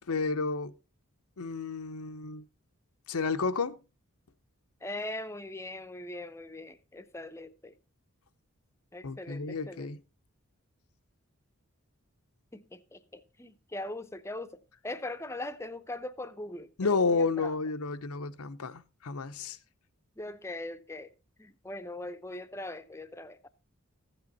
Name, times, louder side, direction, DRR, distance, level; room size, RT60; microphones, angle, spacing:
voice 1, 0.1-0.7 1.4-2.4 3.1-3.8 9.0-10.0 16.8-19.6, left 4 dB, 80° left, 0.7 m, -31 dB
voice 2, 4.8-7.8 8.9-9.9 12.5-17.5 20.2-21.1 21.4-23.5, left 2 dB, 10° left, 0.6 m, -41 dB
14.5 x 8.0 x 4.1 m
head